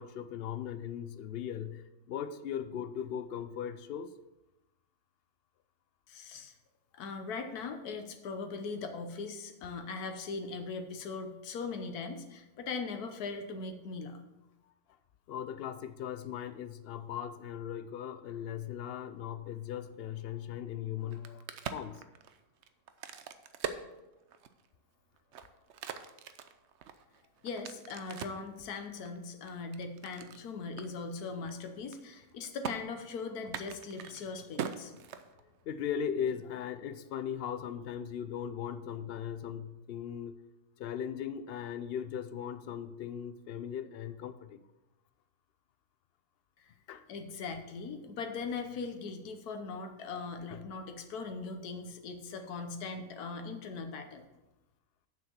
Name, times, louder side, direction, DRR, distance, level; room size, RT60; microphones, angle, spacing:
voice 1, 0.0-4.1 10.0-10.1 15.3-22.0 34.3-34.5 35.4-40.3 40.8-44.6 46.9-47.0 50.5-50.6, left 8 dB, 70° left, 12 dB, 0.5 m, -38 dB
voice 2, 6.1-6.5 6.9-14.2 27.4-34.9 46.6-46.7 47.1-54.2, left 4 dB, 85° left, 6 dB, 1.4 m, -40 dB
Crack, 21.0-24.7 25.2-28.5 29.0-30.4 30.8-30.9 31.2-31.5 31.8-32.3 32.6-32.7 33.4-35.6, right 7 dB, 60° right, 0.8 m, -42 dB
7.3 x 6.2 x 7.0 m, 1.0 s
omnidirectional pair, 1.6 m